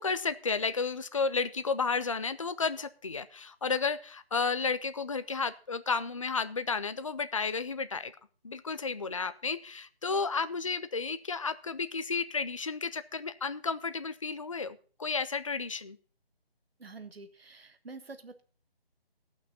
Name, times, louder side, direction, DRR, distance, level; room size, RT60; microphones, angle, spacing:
voice 1, 0.0-8.1 8.4-16.0, left 4 dB, 35° left, 13 dB, 0.4 m, -32 dB
voice 2, 16.8-18.4, right 3 dB, 70° right, 9 dB, 1.5 m, -47 dB
15.5 x 6.1 x 5.3 m, 0.41 s
figure-of-eight pair, 155°, 31 cm